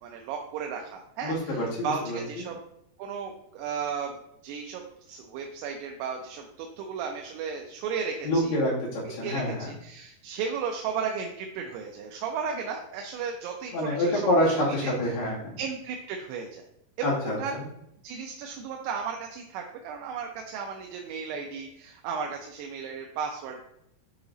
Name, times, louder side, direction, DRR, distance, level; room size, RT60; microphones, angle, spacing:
voice 1, 0.0-2.6 3.0-8.6 9.2-14.2 14.7-14.9 15.6-16.6 17.0-17.5 18.0-23.6, right 6 dB, 85° right, 2 dB, 2.7 m, -35 dB
voice 2, 1.2-2.5 8.2-9.7 13.7-15.6 17.0-17.6, left 1 dB, 80° left, -7 dB, 4.2 m, -27 dB
8.5 x 3.0 x 3.8 m, 0.78 s
omnidirectional pair, 4.7 m